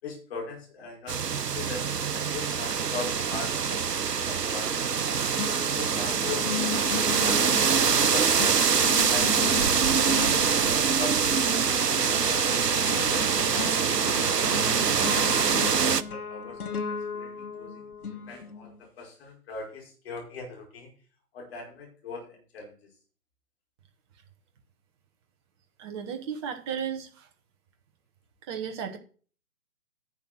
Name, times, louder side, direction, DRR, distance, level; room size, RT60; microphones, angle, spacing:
voice 1, 0.0-5.2 5.7-8.6 9.1-11.6 11.9-12.4 12.9-13.7 14.2-16.6 17.1-17.9 18.3-20.9 21.3-22.7, left 3 dB, 40° left, 0 dB, 5.0 m, -41 dB
sound 1, 1.1-16.0, right 6 dB, 90° right, 0.9 m, -24 dB
sound 2, 4.6-5.1 5.4-18.8, left 5 dB, 65° left, 1.4 m, -36 dB
voice 2, 25.8-27.3 28.5-29.0, right 7 dB, 15° right, 5 dB, 0.9 m, -34 dB
10.5 x 7.2 x 6.3 m, 0.41 s
figure-of-eight pair, 140°, 47 cm